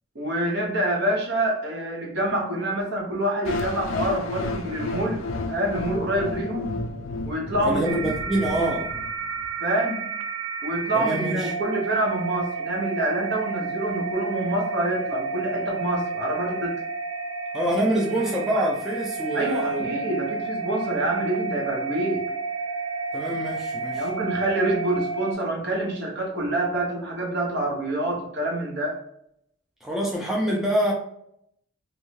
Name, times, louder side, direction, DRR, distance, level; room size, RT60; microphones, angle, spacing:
voice 1, 0.1-6.8 7.3-7.8 9.6-10.0 10.6-16.7 19.3-22.3 23.9-29.0, right 1 dB, 60° right, -1 dB, 0.9 m, -26 dB
sound 1, 3.4-9.5, left 3 dB, 85° left, 0.4 m, -32 dB
voice 2, 7.6-8.9 10.9-11.5 17.5-20.1 23.1-24.1 29.8-30.9, right 1 dB, ahead, -3 dB, 0.4 m, -26 dB
sound 2, 7.8-25.3, right 4 dB, 80° right, 0.3 m, -31 dB
2.7 x 2.3 x 3.0 m, 0.74 s
head